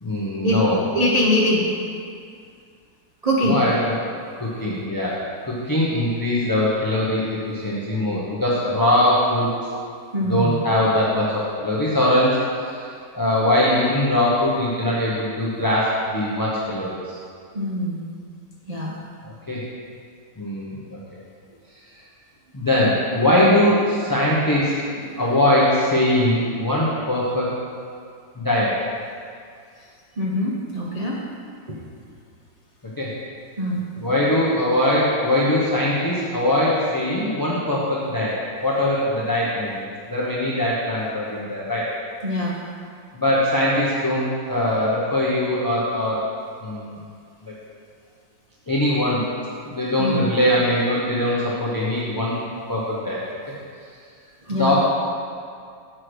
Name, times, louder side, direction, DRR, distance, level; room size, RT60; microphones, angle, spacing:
voice 1, 0.0-0.8 3.5-3.9 4.4-5.2 5.5-9.5 10.2-12.8 13.1-17.2 19.2-19.6 20.4-21.0 22.5-24.7 25.2-27.5 28.4-28.7 33.0-33.1 34.0-38.3 38.6-39.8 40.1-41.9 43.1-46.2 46.6-47.0 47.4-47.5 48.7-49.2 49.7-52.4 52.7-53.4 54.5-54.8, left 1 dB, 20° left, -7 dB, 0.6 m, -21 dB
voice 2, 0.9-1.7 3.2-3.6 10.1-10.6 17.5-18.0 18.7-19.0 24.9-25.3 30.2-31.2 31.7-31.8 33.6-33.8 42.2-42.6 50.0-50.4 54.5-54.8, equal, 65° right, -4 dB, 0.3 m, -23 dB
7.5 x 4.7 x 6.2 m, 2.2 s
omnidirectional pair, 2.0 m